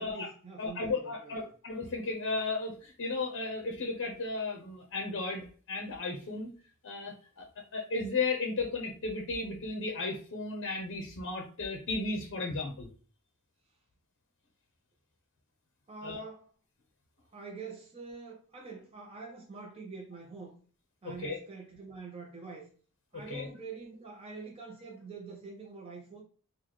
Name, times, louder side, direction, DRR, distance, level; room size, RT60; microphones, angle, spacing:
voice 1, 0.0-1.5 15.9-16.5 17.3-20.6 21.0-22.7 23.1-26.2, right 4 dB, 25° right, 0.6 m, -45 dB
voice 2, 0.6-6.5 6.8-12.9 16.0-16.2 21.2-21.4 23.3-23.5, left 3 dB, 60° left, 0.6 m, -34 dB
3.9 x 2.2 x 3.0 m
head